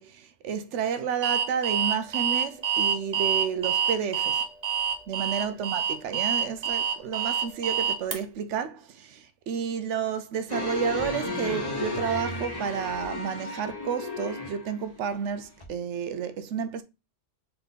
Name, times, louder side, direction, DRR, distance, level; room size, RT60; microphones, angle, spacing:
voice 1, 0.0-4.4 5.1-16.8, right 7 dB, 80° right, 0.9 m, -31 dB
Alarm, 1.2-8.2, right 8 dB, 40° right, 0.8 m, -26 dB
sound 1, 10.5-14.8 15.6-15.7, left 2 dB, 20° left, 1.2 m, -33 dB
3.9 x 3.4 x 4.0 m
omnidirectional pair, 1.2 m